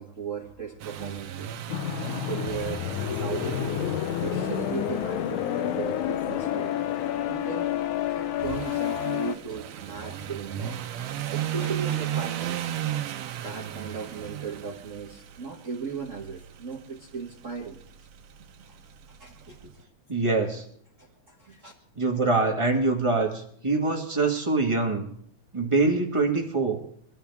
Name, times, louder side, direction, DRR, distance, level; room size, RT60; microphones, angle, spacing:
voice 1, 0.0-3.9 4.2-6.7 7.0-7.8 8.1-10.8 11.3-12.9 13.4-17.8 19.2-19.8 21.0-21.7, right 5 dB, 45° right, 0 dB, 1.0 m, -37 dB
sound 1, 0.8-19.7, right 11 dB, 70° right, 1.8 m, -36 dB
sound 2, 1.7-9.4, left 11 dB, 80° left, 2.2 m, -29 dB
voice 2, 20.1-20.6 21.9-25.1 25.5-26.8, right 3 dB, 20° right, 0 dB, 0.8 m, -24 dB
23.5 x 13.0 x 3.5 m, 0.64 s
omnidirectional pair, 3.4 m